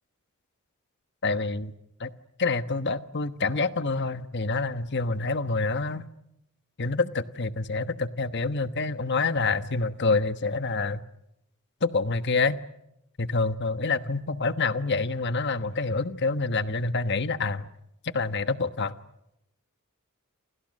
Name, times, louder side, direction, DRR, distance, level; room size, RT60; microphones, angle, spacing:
voice 1, 1.2-1.7 2.0-2.1 2.4-6.1 6.8-11.0 11.8-12.6 13.2-17.7 18.0-19.0, left 3 dB, 50° left, 11 dB, 1.2 m, -27 dB
29.5 x 27.5 x 6.5 m, 0.83 s
head